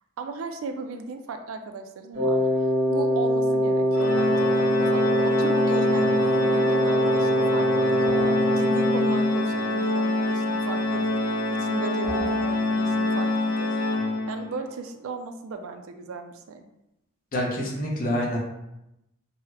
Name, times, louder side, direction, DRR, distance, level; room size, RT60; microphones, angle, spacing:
voice 1, 0.2-2.4 2.9-8.0 8.6-11.2 11.6-13.8 14.3-16.6, right 4 dB, 70° right, 6 dB, 0.4 m, -36 dB
Wind instrument woodwind instrument, 2.1-9.4, equal, 40° right, 0.7 m, -23 dB
Organ, 3.9-14.6, left 2 dB, 80° left, 0.4 m, -26 dB
sound 1, 8.0-8.5 12.0-12.5, equal, 15° left, 1.2 m, -36 dB
voice 2, 17.3-18.4, equal, 40° left, -2 dB, 0.7 m, -26 dB
3.8 x 2.1 x 2.7 m, 0.87 s
head